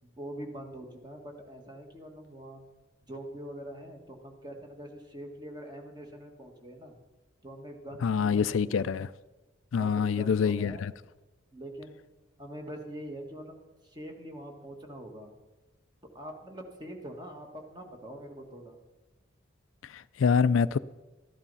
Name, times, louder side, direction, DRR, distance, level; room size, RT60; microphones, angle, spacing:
voice 1, 0.0-2.6 3.0-7.0 7.4-8.9 9.7-10.8 11.5-12.0 12.4-15.3 16.1-18.8, right 1 dB, 20° right, 1.7 m, -44 dB
voice 2, 8.0-9.1 9.7-10.7 19.9-20.8, left 6 dB, 80° left, 0.4 m, -25 dB
13.0 x 11.5 x 5.5 m
head